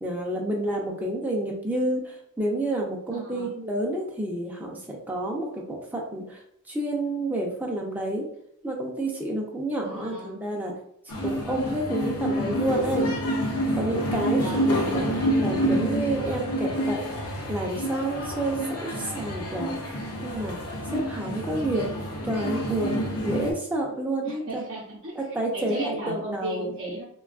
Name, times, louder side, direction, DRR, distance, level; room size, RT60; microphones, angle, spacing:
voice 1, 0.0-6.4 6.7-8.3 8.6-10.7 11.2-13.1 13.7-15.0 15.4-17.0 17.5-19.9 20.2-21.9 22.2-24.6 25.2-26.7, right 1 dB, 10° right, -1 dB, 0.5 m, -29 dB
voice 2, 3.1-3.5 9.8-10.4 14.1-15.4 24.2-25.2 25.5-27.0, right 1 dB, 50° right, -7 dB, 0.6 m, -35 dB
sound 1, 11.1-23.5, equal, 80° left, 0.7 m, -28 dB
3.4 x 2.3 x 2.4 m, 0.70 s
head